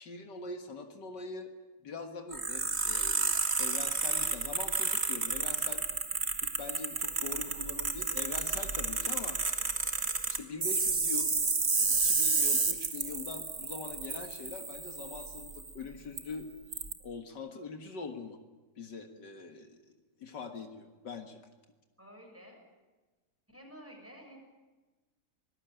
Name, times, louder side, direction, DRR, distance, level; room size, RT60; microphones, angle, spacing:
voice 1, 0.0-1.5 1.8-5.9 6.4-9.6 10.3-11.3 11.8-16.5 17.0-18.4 18.8-19.9 20.2-21.4, left 4 dB, 75° left, 6 dB, 2.3 m, -43 dB
sound 1, 2.3-15.7 16.2-16.3 16.7-16.9, right 4 dB, 40° right, 2.1 m, -31 dB
voice 2, 22.0-22.6 23.5-24.4, equal, 5° right, 1 dB, 6.8 m, -51 dB
25.0 x 19.5 x 9.1 m, 1.2 s
omnidirectional pair, 1.9 m